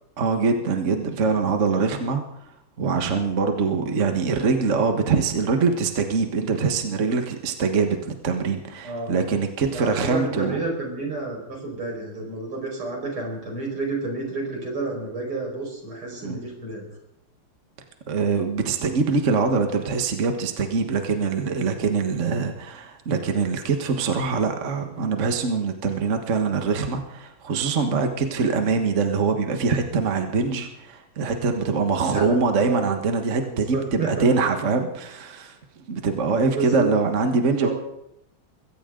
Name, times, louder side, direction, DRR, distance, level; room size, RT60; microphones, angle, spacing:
voice 1, 0.2-2.2 2.8-10.6 16.2-16.4 18.1-35.5 35.9-37.7, right 4 dB, 40° right, 5 dB, 1.6 m, -23 dB
voice 2, 8.8-9.3 9.6-16.8 32.1-32.8 33.5-34.3 36.3-36.9 37.3-37.7, right 3 dB, 80° right, 0 dB, 6.2 m, -30 dB
23.0 x 16.5 x 3.9 m, 0.82 s
omnidirectional pair, 2.3 m